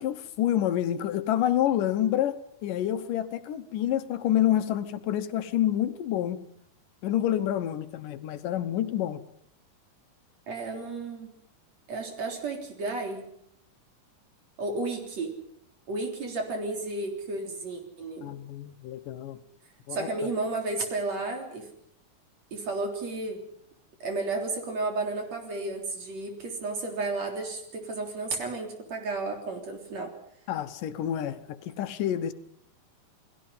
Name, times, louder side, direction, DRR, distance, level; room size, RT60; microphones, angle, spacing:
voice 1, 0.0-6.4 7.0-9.2 18.2-19.4 19.9-20.1 30.5-32.3, left 11 dB, 80° left, 10 dB, 2.7 m, -28 dB
voice 2, 10.5-11.4 11.9-13.3 14.6-15.3 15.9-18.3 19.9-21.7 22.5-23.4 24.0-30.1, right 3 dB, 55° right, 3 dB, 4.7 m, -32 dB
29.0 x 19.5 x 5.7 m, 0.69 s
omnidirectional pair, 3.7 m